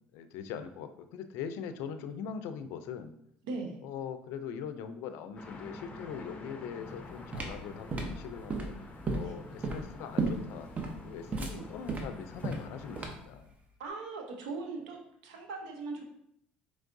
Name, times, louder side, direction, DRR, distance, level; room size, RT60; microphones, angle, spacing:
voice 1, 0.1-3.1 3.8-10.7 11.0-13.5, left 7 dB, 75° left, 9 dB, 0.4 m, -41 dB
voice 2, 3.4-3.8 9.2-9.3 11.5-11.6 13.8-16.0, right 3 dB, 90° right, 2 dB, 0.8 m, -39 dB
sound 1, 5.4-13.1, left 2 dB, 30° left, 0.7 m, -48 dB
sound 2, 6.9-13.4, right 3 dB, 35° right, 0.8 m, -35 dB
4.4 x 3.2 x 2.6 m, 0.73 s
supercardioid pair, 80°, 4 cm